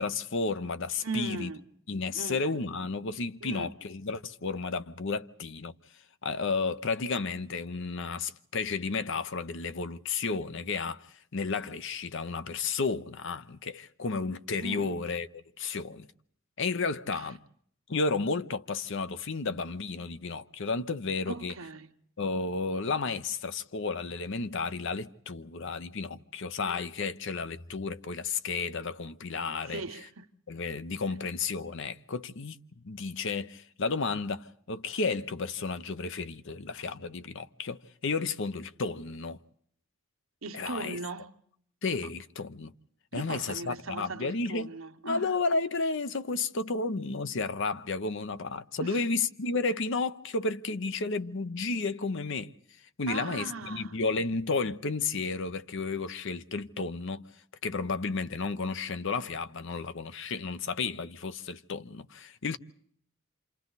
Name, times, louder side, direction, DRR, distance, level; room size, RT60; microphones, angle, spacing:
voice 1, 0.0-1.5 1.9-5.7 6.2-16.1 16.6-17.4 17.9-21.5 22.2-29.8 30.5-39.4 40.5-41.0 41.8-42.7 43.1-44.7 45.0-52.5 53.0-57.3 57.6-62.6, left 4 dB, 60° left, 0.8 m, -32 dB
voice 2, 1.0-1.6 2.1-2.7 3.4-3.7 14.6-15.0 17.1-17.3 21.3-21.9 29.7-30.3 40.4-41.3 43.1-45.3 48.8-49.0 53.1-54.0, right 3 dB, 75° right, 1.3 m, -38 dB
28.0 x 27.5 x 4.1 m
head